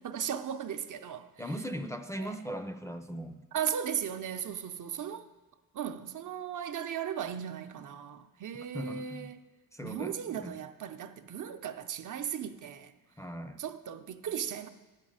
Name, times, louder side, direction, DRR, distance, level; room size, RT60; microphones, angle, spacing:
voice 1, 0.0-1.3 2.2-2.3 3.5-5.2 5.7-9.4 9.8-12.9 13.6-14.7, right 8 dB, 60° right, 0.7 m, -36 dB
voice 2, 1.4-3.4 8.7-9.3 9.7-10.6 13.2-13.6, equal, 10° left, 0.5 m, -39 dB
12.0 x 5.3 x 8.9 m
cardioid pair, 120°, 35 cm